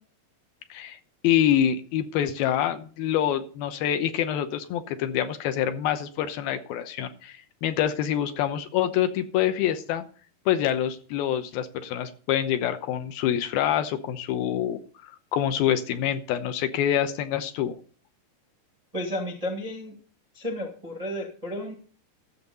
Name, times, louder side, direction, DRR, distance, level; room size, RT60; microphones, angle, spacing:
voice 1, 1.2-10.0 10.5-17.8, left 10 dB, 75° left, 9 dB, 2.6 m, -26 dB
voice 2, 18.9-20.0 20.3-21.7, left 1 dB, 70° right, -1 dB, 0.3 m, -32 dB
14.0 x 7.3 x 5.3 m, 0.41 s
omnidirectional pair, 4.7 m